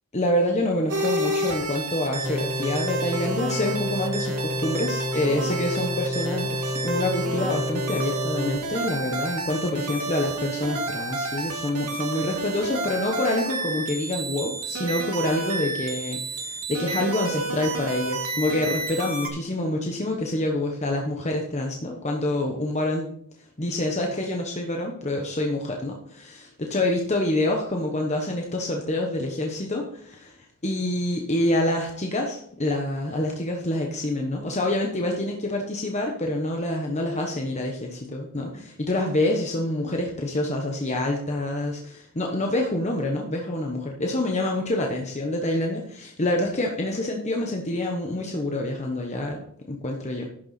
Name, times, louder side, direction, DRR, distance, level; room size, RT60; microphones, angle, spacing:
voice 1, 0.1-23.1 23.6-30.3 30.6-49.4 49.7-50.3, left 1 dB, 30° left, 1 dB, 1.1 m, -27 dB
sound 1, 0.9-19.3, right 2 dB, 85° right, 2.1 m, -31 dB
sound 2, 2.2-8.6, left 1 dB, 15° right, 1.0 m, -30 dB
11.0 x 6.9 x 4.2 m, 0.65 s
head